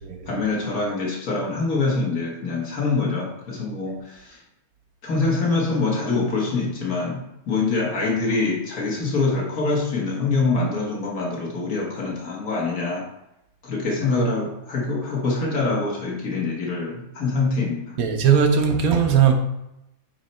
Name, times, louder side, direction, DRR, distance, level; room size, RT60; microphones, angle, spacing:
voice 1, 0.3-4.4 5.0-13.1 13.6-18.0, left 3 dB, 75° left, -2 dB, 1.9 m, -25 dB
voice 2, 18.0-19.3, right 7 dB, 75° right, 4 dB, 1.3 m, -18 dB
8.7 x 3.1 x 4.2 m, 0.86 s
omnidirectional pair, 1.5 m